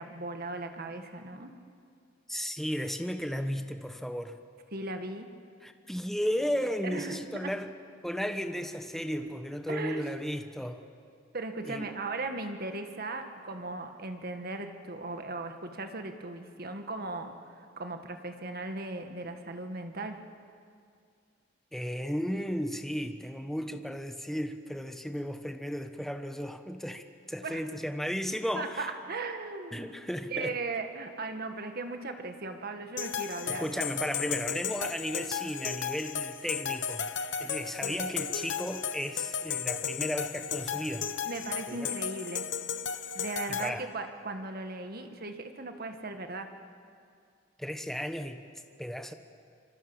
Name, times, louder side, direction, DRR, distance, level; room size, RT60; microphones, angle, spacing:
voice 1, 0.0-1.5 4.7-5.3 6.8-7.5 9.7-10.1 11.3-20.2 27.4-27.6 28.5-29.9 30.3-33.7 37.8-38.0 41.2-42.5 43.1-46.5, right 3 dB, 50° right, 6 dB, 1.8 m, -37 dB
voice 2, 2.3-4.4 5.6-7.7 8.0-10.8 11.7-11.9 21.7-28.9 29.7-30.5 33.5-37.1 37.4-41.1 41.7-41.9 43.5-43.9 47.6-48.4 48.8-49.1, equal, ahead, 7 dB, 1.2 m, -34 dB
sound 1, 33.0-43.7, left 7 dB, 65° left, 1.1 m, -34 dB
25.5 x 24.5 x 7.3 m, 2.3 s
head